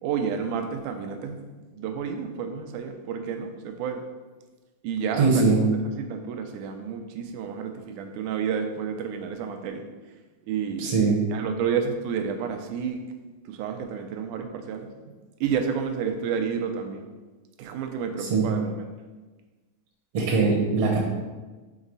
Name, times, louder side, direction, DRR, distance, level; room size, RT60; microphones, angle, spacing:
voice 1, 0.0-4.1 4.8-5.7 6.0-9.8 10.5-11.0 11.3-13.0 13.5-14.9 15.4-17.1 17.6-18.8, right 7 dB, 90° right, 5 dB, 2.1 m, -30 dB
voice 2, 5.2-5.6 10.8-11.2 18.2-18.5 20.1-21.0, right 4 dB, 65° right, -2 dB, 1.6 m, -21 dB
6.3 x 4.0 x 3.9 m, 1.3 s
omnidirectional pair, 3.5 m